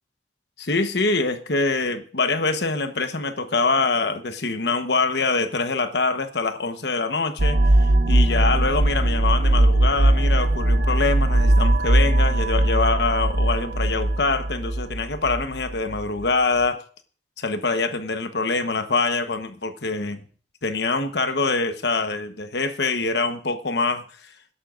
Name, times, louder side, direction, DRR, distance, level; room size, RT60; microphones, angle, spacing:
voice 1, 0.6-16.8 17.4-20.2 20.6-24.0, left 3 dB, 65° left, 9 dB, 1.1 m, -24 dB
sound 1, 7.4-16.0, right 1 dB, 55° right, 0.8 m, -20 dB
22.5 x 11.0 x 2.5 m, 0.41 s
head